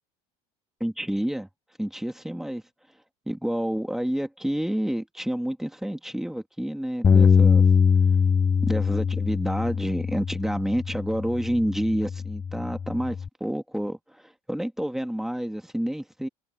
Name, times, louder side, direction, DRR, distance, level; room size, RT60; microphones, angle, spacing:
voice 1, 0.8-1.5 1.8-2.6 3.3-7.6 8.6-16.3, equal, ahead, 2.5 m, -29 dB
Bass guitar, 7.0-13.3, left 6 dB, 20° left, 0.7 m, -22 dB
supercardioid pair, 110°, 16 cm